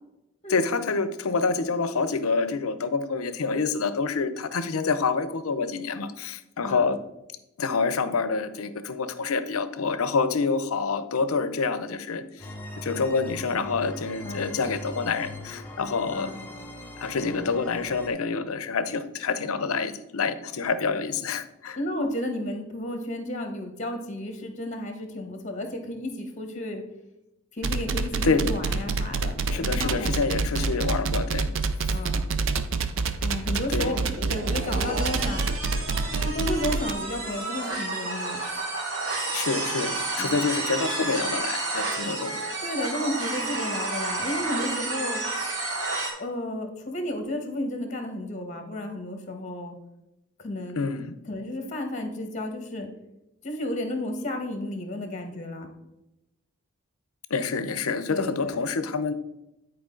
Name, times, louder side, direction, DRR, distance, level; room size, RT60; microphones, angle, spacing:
voice 1, 0.5-7.0 7.6-12.5 12.8-16.3 17.0-21.8 28.2-28.5 29.5-31.5 33.7-33.9 39.3-42.3 50.8-51.1 57.3-59.1, left 4 dB, 80° left, 12 dB, 0.6 m, -27 dB
sound 1, 12.4-18.1, left 1 dB, 10° left, 1.1 m, -40 dB
voice 2, 21.7-26.8 27.5-30.7 31.9-32.4 33.2-34.0 34.3-35.4 36.2-38.4 40.2-40.4 42.6-45.2 46.2-49.7 50.4-50.8 51.3-52.9 53.4-55.7 58.1-58.6, left 1 dB, 35° left, 5 dB, 1.2 m, -32 dB
sound 2, 27.6-36.9, right 4 dB, 60° right, 0.5 m, -27 dB
sound 3, 33.5-46.1, right 2 dB, 80° right, 2.7 m, -31 dB
9.8 x 4.6 x 3.8 m, 0.91 s
head